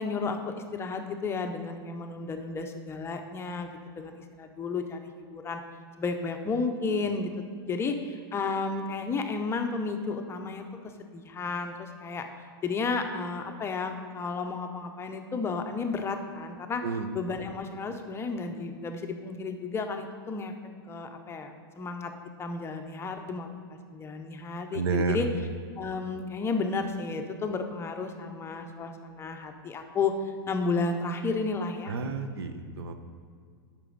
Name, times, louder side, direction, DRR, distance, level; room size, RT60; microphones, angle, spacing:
voice 1, 0.0-3.7 4.0-5.6 6.0-7.3 7.7-10.7 11.1-12.3 12.6-16.8 17.1-20.5 20.9-22.1 22.4-25.3 25.8-30.1 30.5-31.9, left 4 dB, 20° left, 5 dB, 0.7 m, -32 dB
voice 2, 24.7-25.3 31.9-32.9, right 5 dB, 80° right, 8 dB, 0.7 m, -30 dB
8.9 x 6.0 x 3.9 m, 2.1 s
hypercardioid pair, 115°, 13 cm